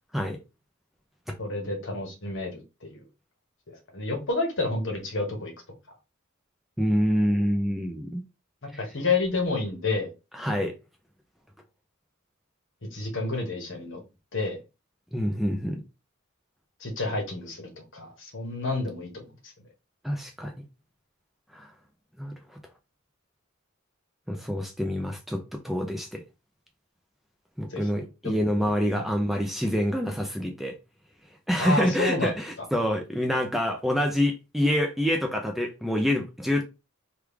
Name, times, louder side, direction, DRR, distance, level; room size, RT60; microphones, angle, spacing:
voice 1, 1.4-3.0 3.7-5.5 8.8-10.1 12.9-14.0 14.3-14.6 16.8-19.5 27.7-27.9 28.2-28.4 28.9-29.1 31.6-32.3, left 3 dB, 60° left, 1.1 m, -30 dB
voice 2, 6.8-8.2 10.3-10.8 15.1-15.8 20.0-20.6 21.5-21.7 22.2-22.6 24.3-26.2 27.6-30.7 31.5-36.6, equal, ahead, 0.4 m, -26 dB
3.1 x 2.3 x 3.4 m
head